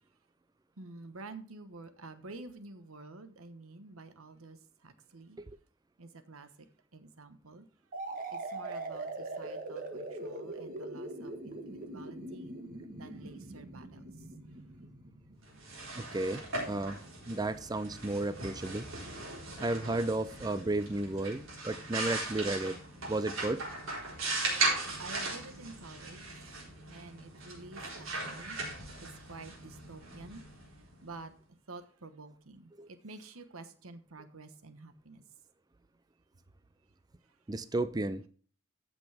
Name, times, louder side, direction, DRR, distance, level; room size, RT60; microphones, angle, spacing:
voice 1, 0.8-5.4 6.0-7.7 8.3-12.5 12.9-14.1 24.5-24.6 25.0-28.6 29.0-30.4 31.0-31.3 31.7-35.2, right 3 dB, 90° right, 1.1 m, -50 dB
sound 1, 7.9-15.6, right 2 dB, 40° right, 1.6 m, -42 dB
sound 2, 15.5-31.1, right 2 dB, 70° right, 4.0 m, -38 dB
voice 2, 16.0-17.0 17.2-18.9 19.6-22.8 23.1-23.6 32.8-32.9 37.5-38.2, right 2 dB, 20° right, 0.4 m, -33 dB
13.5 x 6.1 x 3.4 m
head